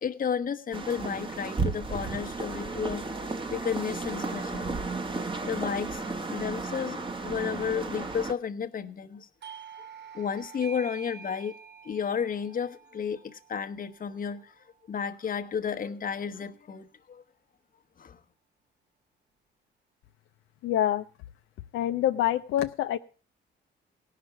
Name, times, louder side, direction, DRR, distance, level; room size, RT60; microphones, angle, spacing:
voice 1, 0.0-3.2 3.5-4.8 5.4-9.3 9.8-9.9 10.1-11.5 11.8-14.5 14.9-17.2 18.0-18.2, left 7 dB, 45° left, 7 dB, 1.1 m, -32 dB
sound 1, 0.7-8.3, right 3 dB, 25° right, 1.3 m, -33 dB
Doorbell, 9.4-14.7, right 6 dB, 60° right, 1.0 m, -47 dB
voice 2, 20.6-21.1 21.7-23.0, left 12 dB, 85° left, 8 dB, 0.6 m, -26 dB
17.0 x 5.9 x 6.9 m, 0.37 s
cardioid pair, 90°, 20 cm